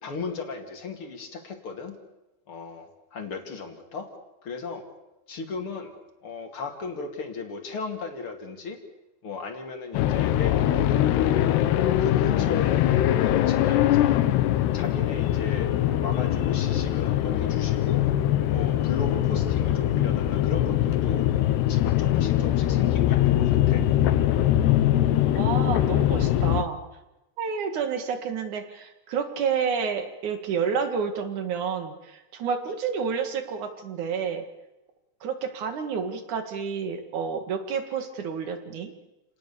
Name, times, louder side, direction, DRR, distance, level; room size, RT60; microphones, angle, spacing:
voice 1, 0.0-1.9 2.5-4.1 4.4-4.9 5.3-5.9 6.2-8.8 9.2-11.6 12.0-14.2 14.7-15.7 16.0-18.1 18.5-21.3 21.7-23.9, left 4 dB, 35° left, 5 dB, 2.7 m, -36 dB
sound 1, 9.9-26.6, left 12 dB, 80° left, 3.0 m, -22 dB
voice 2, 25.4-26.8 27.4-34.4 35.2-38.9, right 6 dB, 55° right, 7 dB, 3.0 m, -29 dB
29.5 x 19.0 x 7.0 m, 1.0 s
omnidirectional pair, 4.9 m